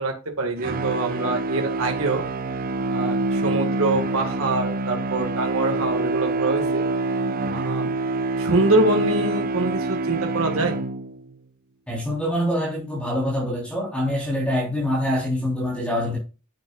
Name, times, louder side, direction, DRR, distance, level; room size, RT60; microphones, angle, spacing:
voice 1, 0.0-2.2 2.9-6.8 7.5-7.9 8.4-10.8, right 2 dB, 70° right, 1.8 m, -24 dB
sound 1, 0.6-11.3, right 2 dB, 40° right, 0.7 m, -26 dB
voice 2, 11.9-16.2, left 1 dB, 5° left, 3.7 m, -25 dB
10.0 x 8.5 x 2.4 m
head